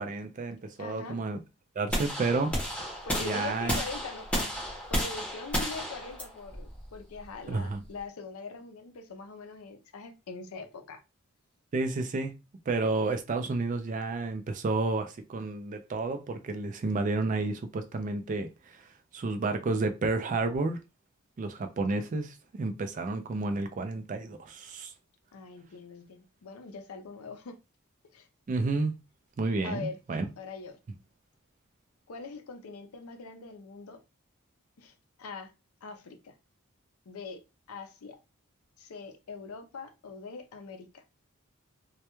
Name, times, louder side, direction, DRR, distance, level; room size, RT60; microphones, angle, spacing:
voice 1, 0.0-1.4 1.8-2.5 3.2-3.8 7.5-7.8 11.7-12.3 12.7-18.5 19.1-20.8 21.4-24.9 28.5-28.9 29.4-30.2, right 3 dB, 35° right, 0.3 m, -31 dB
voice 2, 0.8-1.2 3.1-4.5 4.9-11.0 25.3-27.6 28.1-28.3 29.6-30.0 30.4-30.8 32.1-34.0 34.8-35.5 35.8-36.3 37.1-37.4 37.7-38.2 38.8-41.0, left 4 dB, 80° left, 0.5 m, -42 dB
sound 1, 1.9-8.0, equal, 5° left, 0.7 m, -33 dB
2.2 x 2.1 x 2.9 m
head